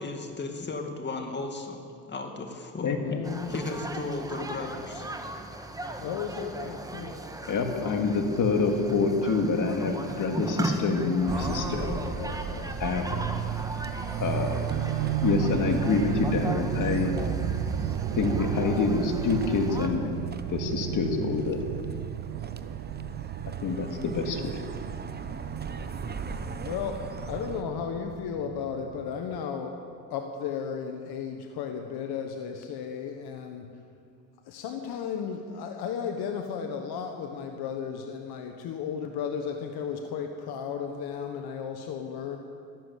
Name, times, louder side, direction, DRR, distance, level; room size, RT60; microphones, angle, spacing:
voice 1, 0.0-1.8 2.1-3.2 3.5-5.1, left 3 dB, 25° left, 3 dB, 2.3 m, -35 dB
voice 2, 3.0-3.5 6.0-7.2 11.8-12.7 26.6-29.8 30.1-33.7 34.4-42.4, left 7 dB, 65° left, 4 dB, 1.4 m, -34 dB
sound 1, 3.2-19.9, right 2 dB, 10° right, 1.4 m, -37 dB
voice 3, 7.5-11.8 12.8-13.1 14.2-14.7 15.2-17.1 18.2-20.1 20.5-21.6 23.6-24.6, left 4 dB, 50° left, 4 dB, 2.3 m, -26 dB
sound 2, 11.3-27.6, right 4 dB, 25° right, 0.9 m, -37 dB
sound 3, 13.1-29.4, right 14 dB, 75° right, 0.6 m, -34 dB
13.5 x 12.5 x 8.2 m, 2.2 s
supercardioid pair, 90°, 40 cm